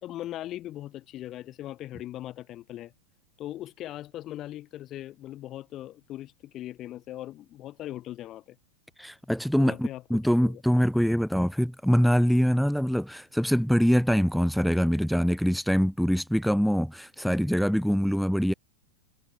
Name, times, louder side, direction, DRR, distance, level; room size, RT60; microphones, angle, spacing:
voice 1, 0.0-2.9 3.4-8.6 9.6-10.6, left 13 dB, 35° left, 0.9 m, -39 dB
voice 2, 9.0-18.5, equal, ahead, 0.3 m, -24 dB
figure-of-eight pair, 90°, 0 cm